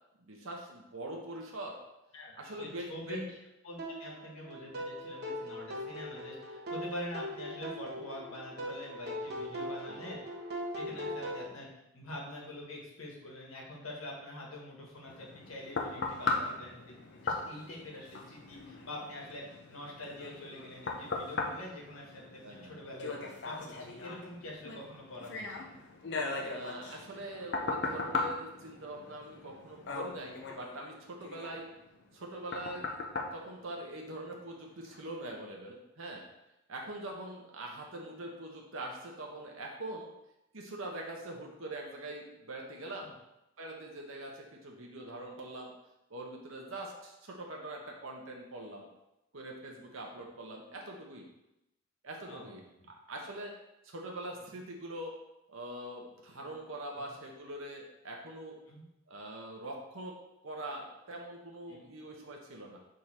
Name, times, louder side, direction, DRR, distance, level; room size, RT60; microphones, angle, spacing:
voice 1, 0.2-1.8 2.4-3.2 9.8-10.1 10.8-11.1 16.2-16.5 22.4-22.9 26.4-31.7 32.1-33.0 33.3-36.2 36.7-40.1 40.5-43.1 43.6-45.7 46.1-48.9 49.3-51.3 52.0-52.6 53.1-53.5 53.8-55.1 55.5-58.6 59.1-60.2 60.4-62.8, right 1 dB, 75° right, 0 dB, 1.0 m, -43 dB
voice 2, 2.1-3.3 3.6-10.2 10.7-11.7 11.9-25.9 43.0-43.1 52.3-52.5 57.0-57.1 58.7-58.8 61.7-61.8, left 1 dB, 80° left, -2 dB, 1.6 m, -45 dB
sound 1, 3.8-11.5, equal, 50° right, 1.2 m, -40 dB
sound 2, 15.1-34.3 34.8-35.0, left 3 dB, 55° left, 0.8 m, -39 dB
6.4 x 3.7 x 4.3 m, 0.89 s
head